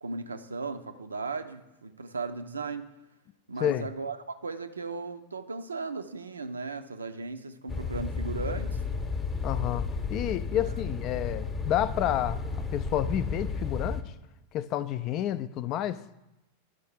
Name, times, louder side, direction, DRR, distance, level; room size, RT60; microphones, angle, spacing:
voice 1, 0.0-2.8 3.5-8.8 10.5-10.7, right 4 dB, 75° right, 9 dB, 0.5 m, -36 dB
sound 1, 7.7-14.0, left 4 dB, 15° left, 0.8 m, -32 dB
voice 2, 9.4-12.4 12.7-14.0 14.5-16.0, left 11 dB, 35° left, 16 dB, 0.3 m, -30 dB
11.0 x 4.8 x 4.7 m, 0.95 s
figure-of-eight pair, 90°, 0 cm